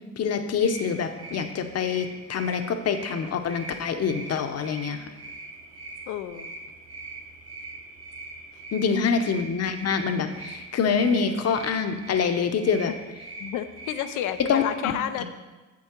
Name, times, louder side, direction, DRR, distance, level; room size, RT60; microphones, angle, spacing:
voice 1, 0.2-5.0 8.7-12.9 14.5-14.9, left 6 dB, 55° left, 7 dB, 0.9 m, -25 dB
sound 1, 0.6-14.7, right 2 dB, 55° right, 1.7 m, -42 dB
voice 2, 6.1-6.5 12.7-13.0 13.4-15.3, left 11 dB, 90° left, 10 dB, 0.6 m, -31 dB
8.5 x 6.9 x 4.5 m, 1.2 s
cardioid pair, 90°, 30 cm